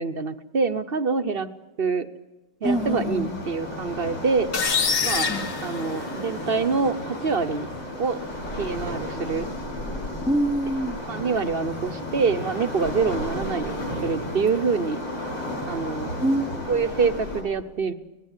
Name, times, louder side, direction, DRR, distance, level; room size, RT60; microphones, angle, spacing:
voice 1, 0.0-1.5 1.8-2.1 2.6-4.5 5.0-5.3 5.6-7.7 8.0-8.2 8.6-9.5 11.1-15.0 15.7-16.1 16.7-17.9, right 5 dB, 45° right, 10 dB, 0.8 m, -25 dB
Waves surf, 2.6-17.4, left 1 dB, 85° left, 8.7 m, -33 dB
voice 2, 2.6-3.4 5.3-5.5 10.3-11.0 16.2-16.6, right 1 dB, ahead, 8 dB, 0.5 m, -25 dB
sound 1, 4.5-6.5, left 5 dB, 50° left, 1.6 m, -25 dB
24.5 x 19.5 x 8.2 m, 1.1 s
omnidirectional pair, 2.0 m